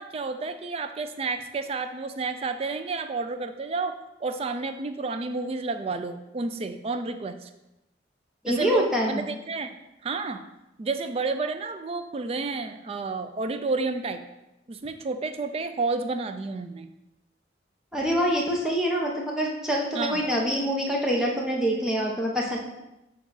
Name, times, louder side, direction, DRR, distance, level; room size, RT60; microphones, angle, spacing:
voice 1, 0.0-7.5 8.5-9.8 10.0-10.4 10.8-14.2 14.7-16.9 19.9-20.2, right 3 dB, 30° right, 9 dB, 0.3 m, -30 dB
voice 2, 8.4-9.2 17.9-22.6, equal, 5° right, -3 dB, 0.8 m, -25 dB
7.1 x 2.4 x 5.5 m, 0.94 s
head